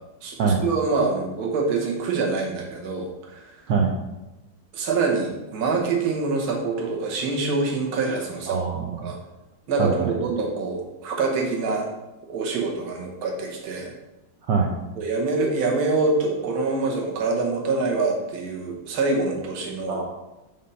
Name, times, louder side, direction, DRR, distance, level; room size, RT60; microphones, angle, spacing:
voice 1, 0.2-3.6 4.7-8.6 9.0-9.2 9.7-11.9 12.3-13.9 15.0-20.0, right 3 dB, 50° right, 0 dB, 1.4 m, -25 dB
voice 2, 8.5-9.1 9.8-10.1 14.5-14.8 19.9-20.0, right 5 dB, 70° right, -1 dB, 1.1 m, -23 dB
5.3 x 3.4 x 5.5 m, 0.99 s
omnidirectional pair, 2.4 m